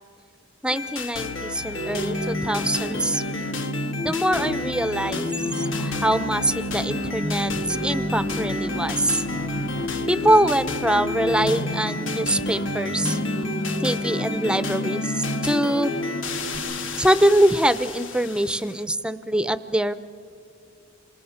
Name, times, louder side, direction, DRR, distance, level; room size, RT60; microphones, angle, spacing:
voice 1, 0.6-3.2 4.0-5.3 5.5-9.3 10.1-13.2 13.8-15.9 17.0-20.0, right 1 dB, 5° right, 13 dB, 0.5 m, -23 dB
sound 1, 0.7-18.8, left 3 dB, 70° left, 1.3 m, -32 dB
sound 2, 1.7-16.6, equal, 50° left, 3.0 m, -30 dB
28.0 x 26.0 x 5.7 m, 2.3 s
head